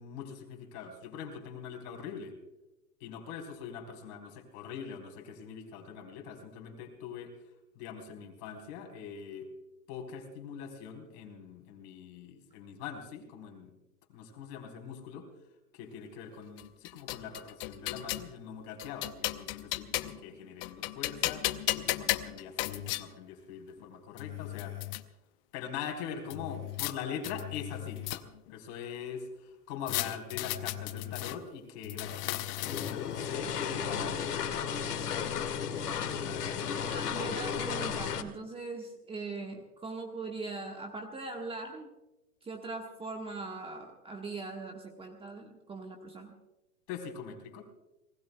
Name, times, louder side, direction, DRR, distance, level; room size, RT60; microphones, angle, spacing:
voice 1, 0.0-2.3 3.0-7.4 7.7-9.5 9.9-13.7 14.1-15.3 15.7-24.8 25.5-35.7 36.2-36.8 46.9-47.6, left 7 dB, 40° left, 3 dB, 4.2 m, -43 dB
sound 1, 16.6-18.3 18.8-20.3 20.6-23.0 23.8-23.9 24.2-25.0 26.3-26.9 27.2-28.5 29.9-31.4 31.8-33.2, left 17 dB, 25° left, 0.7 m, -35 dB
sound 2, 32.6-38.2, left 7 dB, 75° left, 2.1 m, -34 dB
voice 2, 36.8-41.9 42.4-46.3, right 3 dB, 10° right, 2 dB, 1.4 m, -40 dB
29.5 x 19.5 x 2.3 m, 1.0 s
hypercardioid pair, 125°, 47 cm